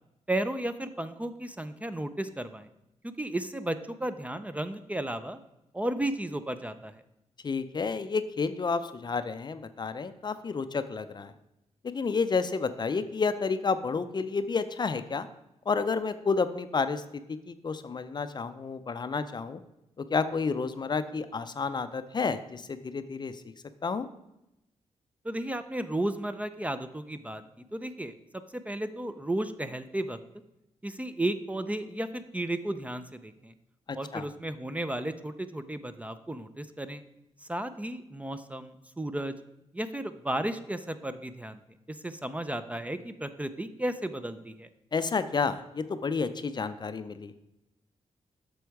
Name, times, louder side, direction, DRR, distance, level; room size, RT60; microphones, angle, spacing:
voice 1, 0.3-2.7 3.0-5.4 5.7-7.0 25.2-27.4 27.7-30.2 30.8-33.5 33.9-37.0 37.5-39.3 39.7-41.6 41.9-44.7, right 1 dB, 10° right, 10 dB, 0.5 m, -34 dB
voice 2, 7.4-11.3 11.8-15.3 15.7-17.0 17.3-19.6 20.0-23.4 23.8-24.1 33.9-34.3 44.9-47.3, left 4 dB, 35° left, 11 dB, 0.5 m, -30 dB
8.0 x 6.2 x 4.7 m, 0.88 s
cardioid pair, 100°, 12 cm